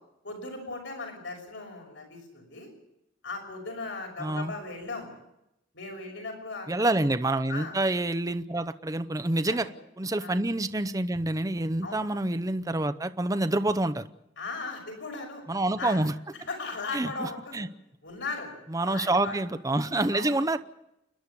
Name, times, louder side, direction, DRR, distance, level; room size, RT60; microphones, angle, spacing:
voice 1, 0.2-2.7 3.2-5.2 5.7-6.7 7.5-7.7 9.5-9.7 10.2-10.3 11.8-12.1 14.4-15.4 15.8-16.0 16.5-17.7 18.0-18.5 18.9-19.4 20.1-20.4, left 3 dB, 75° left, 2 dB, 6.1 m, -37 dB
voice 2, 4.2-4.5 6.7-9.7 10.0-14.1 15.5-16.1 16.9-17.7 18.7-20.6, right 2 dB, 20° right, 11 dB, 0.7 m, -27 dB
29.5 x 11.5 x 8.5 m, 0.85 s
head